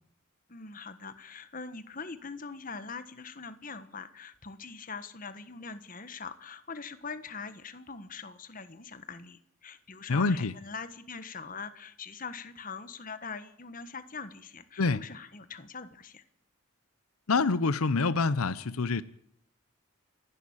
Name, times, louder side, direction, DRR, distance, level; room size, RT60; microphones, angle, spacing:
voice 1, 0.5-16.2, left 5 dB, 40° left, 1.4 m, -42 dB
voice 2, 10.1-10.5 14.8-15.0 17.3-19.0, left 4 dB, 85° left, 0.7 m, -26 dB
28.0 x 11.0 x 8.8 m
head